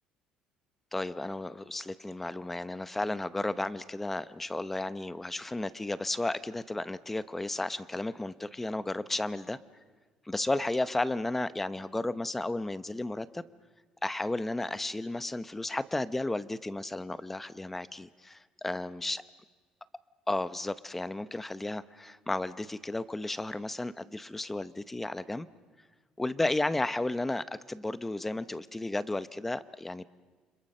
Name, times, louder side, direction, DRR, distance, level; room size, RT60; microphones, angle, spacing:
voice 1, 0.9-9.6 10.3-13.4 14.0-19.2 20.3-25.5 26.2-30.0, left 2 dB, 10° left, 15 dB, 0.7 m, -33 dB
30.0 x 26.0 x 6.6 m, 1.4 s
cardioid pair, 140°, 2 cm